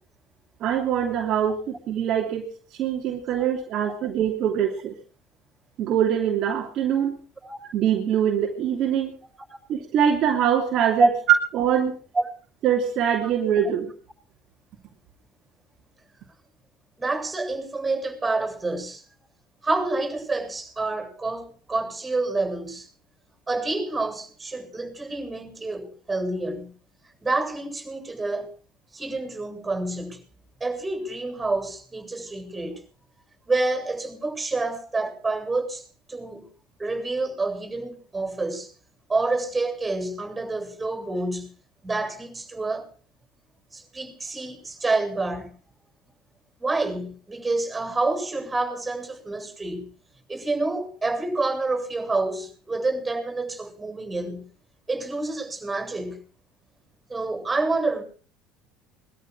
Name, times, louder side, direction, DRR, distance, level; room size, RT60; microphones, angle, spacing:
voice 1, 0.6-4.9 5.8-7.2 7.7-9.1 9.7-11.1 11.5-11.9 12.6-13.9, right 9 dB, 55° right, 3.1 m, -23 dB
voice 2, 17.0-19.0 19.6-22.9 23.5-26.7 27.2-28.5 28.9-30.2 30.6-32.8 33.5-36.5 36.8-38.7 39.1-41.5 41.8-42.9 43.7-45.5 46.6-49.9 50.3-54.5 54.9-56.2 57.1-58.0, right 3 dB, 20° right, 7.9 m, -28 dB
22.0 x 13.5 x 4.8 m
hypercardioid pair, 70°, 0 cm